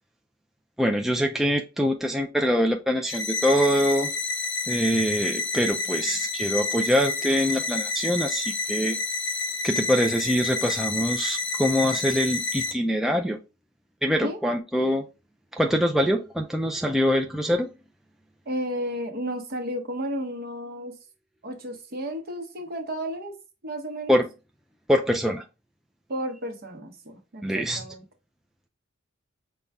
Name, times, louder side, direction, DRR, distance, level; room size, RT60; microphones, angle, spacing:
voice 1, 0.8-4.1 4.7-9.0 9.6-13.4 14.0-15.0 15.5-17.7 24.1-24.2 24.9-25.4 27.4-27.9, equal, ahead, 0.3 m, -24 dB
sound 1, 3.1-12.7, left 3 dB, 70° left, 0.9 m, -29 dB
voice 2, 18.5-21.0 21.4-23.3 23.6-24.2 26.1-28.0, equal, 50° right, 0.9 m, -33 dB
5.2 x 2.3 x 3.4 m
head